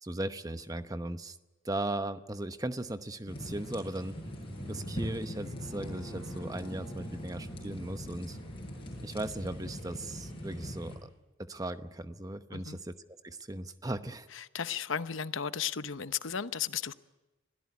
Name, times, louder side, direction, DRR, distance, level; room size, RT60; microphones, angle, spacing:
voice 1, 0.0-1.4 1.6-4.1 4.7-8.4 9.0-11.1 11.5-12.9 13.2-14.3, right 1 dB, 15° right, 0.9 m, -37 dB
sound 1, 3.3-11.0, equal, 25° left, 7.8 m, -41 dB
sound 2, 4.3-9.8, equal, 10° left, 6.6 m, -49 dB
voice 2, 14.3-16.9, left 8 dB, 75° left, 0.9 m, -35 dB
27.5 x 17.5 x 9.5 m
head